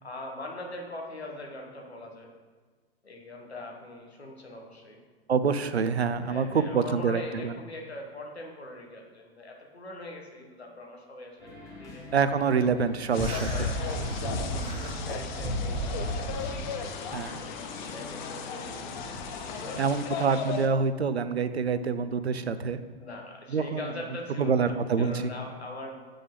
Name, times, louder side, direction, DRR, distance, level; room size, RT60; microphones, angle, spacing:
voice 1, 0.0-2.3 3.0-5.0 6.2-12.0 13.4-14.0 14.5-16.9 17.8-19.0 19.4-19.8 20.0-20.6 23.0-26.0, left 1 dB, 85° left, 1 dB, 1.4 m, -42 dB
voice 2, 5.3-7.5 12.1-13.5 17.1-17.4 19.8-22.8 23.5-23.9 24.4-25.3, right 5 dB, 90° right, 12 dB, 0.5 m, -26 dB
sound 1, 11.4-20.1, left 2 dB, 10° left, 1.6 m, -45 dB
sound 2, 13.1-20.7, left 6 dB, 45° left, 0.8 m, -37 dB
sound 3, 13.1-16.6, equal, 15° right, 1.4 m, -32 dB
7.7 x 5.1 x 3.7 m, 1.4 s
figure-of-eight pair, 105°, 31 cm